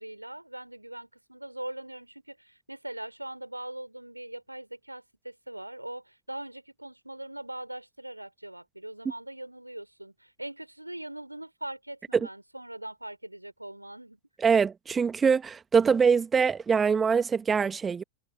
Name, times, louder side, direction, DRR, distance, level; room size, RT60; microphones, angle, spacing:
voice 1, 0.0-14.2, right 1 dB, 85° right, 3.5 m, -41 dB
voice 2, 14.4-18.0, right 6 dB, 15° right, 1.6 m, -23 dB
figure-of-eight pair, 90°, 0 cm